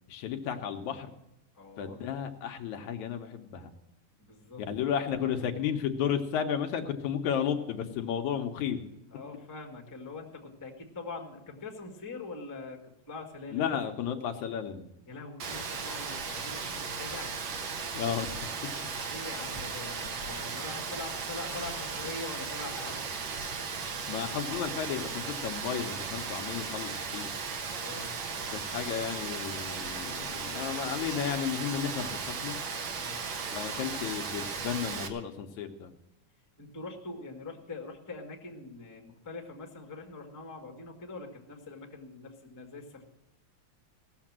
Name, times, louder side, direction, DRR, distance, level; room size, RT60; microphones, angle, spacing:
voice 1, 0.1-1.1 1.8-3.7 4.6-8.8 13.5-14.9 17.9-18.7 24.1-27.3 28.5-32.6 33.5-35.9, left 8 dB, 75° left, 5 dB, 2.1 m, -33 dB
voice 2, 1.5-2.0 4.2-5.3 9.1-12.8 13.1-13.7 15.1-17.3 18.9-23.1 27.8-28.1 33.0-33.2 36.6-43.0, left 3 dB, 10° left, 1 dB, 0.9 m, -43 dB
Rain, 15.4-35.1, right 5 dB, 60° right, 1.4 m, -36 dB
17.5 x 7.0 x 7.4 m, 0.86 s
omnidirectional pair, 3.6 m